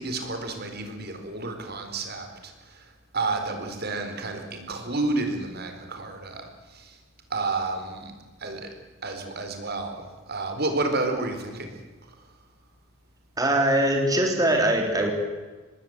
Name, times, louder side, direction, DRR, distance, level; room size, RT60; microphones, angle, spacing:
voice 1, 0.0-7.0 7.3-8.1 8.4-8.7 9.0-11.7, right 3 dB, 50° right, 6 dB, 4.3 m, -31 dB
voice 2, 13.4-15.1, right 1 dB, 20° right, 2 dB, 3.3 m, -22 dB
26.0 x 20.0 x 8.0 m, 1.3 s
head